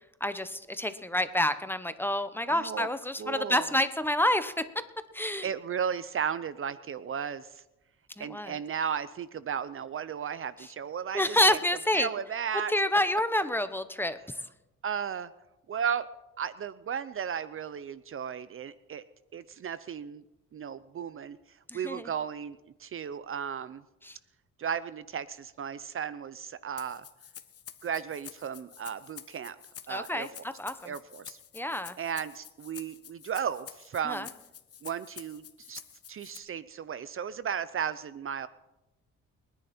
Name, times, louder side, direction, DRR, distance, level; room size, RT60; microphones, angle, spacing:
voice 1, 0.2-4.5 5.1-5.5 8.2-8.5 11.1-12.1 12.7-14.2 21.7-22.0 24.0-24.2 29.9-30.3 30.6-30.9 31.5-31.9 34.0-34.3, left 1 dB, 5° left, 11 dB, 1.0 m, -28 dB
voice 2, 2.5-2.9 3.2-3.8 5.4-7.6 8.2-11.6 11.9-12.7 14.8-15.3 15.7-16.0 16.4-19.0 19.3-20.2 20.5-21.4 21.7-23.8 24.6-27.0 27.8-29.6 29.9-30.3 30.8-31.4 32.0-34.3 34.8-35.8 36.1-38.5, right 7 dB, 45° right, 16 dB, 0.6 m, -35 dB
Rattle (instrument), 26.8-36.4, left 9 dB, 50° left, 1.3 m, -48 dB
29.5 x 10.5 x 4.4 m, 0.98 s
cardioid pair, 90°, 30 cm